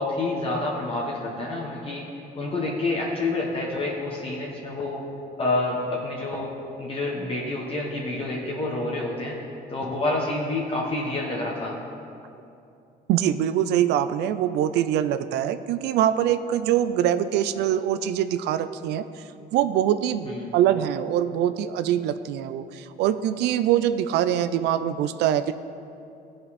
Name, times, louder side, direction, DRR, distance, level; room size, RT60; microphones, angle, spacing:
voice 1, 0.0-2.1 2.3-5.0 5.4-6.5 6.8-9.4 9.7-11.8 20.2-20.5, left 2 dB, 35° left, -2 dB, 1.3 m, -28 dB
voice 2, 13.1-19.2 19.5-25.5, right 10 dB, 80° right, 12 dB, 0.4 m, -24 dB
15.0 x 5.1 x 4.2 m, 2.6 s
cardioid pair, 110°, 17 cm